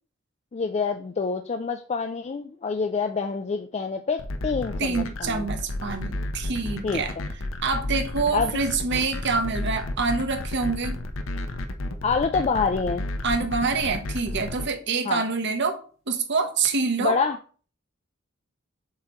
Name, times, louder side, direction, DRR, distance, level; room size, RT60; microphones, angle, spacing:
voice 1, 0.5-5.5 6.8-7.0 8.3-8.6 12.0-13.1 15.0-15.2 17.0-17.4, left 5 dB, 30° left, 0.4 m, -26 dB
sound 1, 4.2-14.6, left 1 dB, 70° left, 0.8 m, -31 dB
voice 2, 4.8-7.1 7.6-11.0 13.2-15.8 16.1-17.2, right 4 dB, 60° right, 1.0 m, -26 dB
7.4 x 3.0 x 4.3 m
head